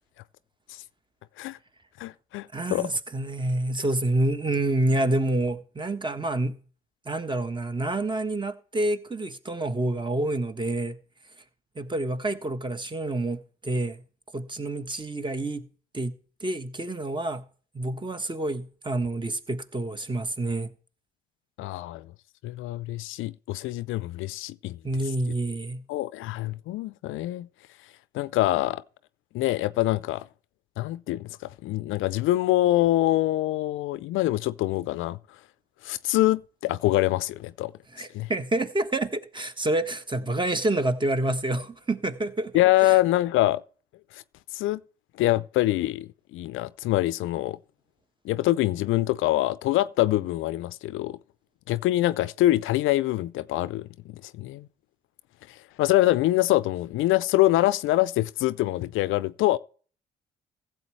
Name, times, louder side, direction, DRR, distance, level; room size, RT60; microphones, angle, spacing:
voice 1, 2.0-2.9 21.6-22.1 22.4-24.8 25.9-27.5 28.1-28.8 29.3-30.2 30.8-31.2 31.6-35.2 35.8-37.7 38.1-38.3 42.5-43.6 44.5-44.8 45.2-47.6 48.2-51.2 51.7-53.8 54.3-54.7 55.8-59.6, left 16 dB, 70° left, 0.5 m, -24 dB
voice 2, 2.5-6.6 7.0-11.0 11.7-14.0 14.3-15.7 15.9-17.4 17.7-20.7 24.8-25.8 37.9-42.5 42.8-43.0, right 2 dB, 20° right, 1.3 m, -28 dB
15.5 x 7.7 x 3.2 m
hypercardioid pair, 50°, 21 cm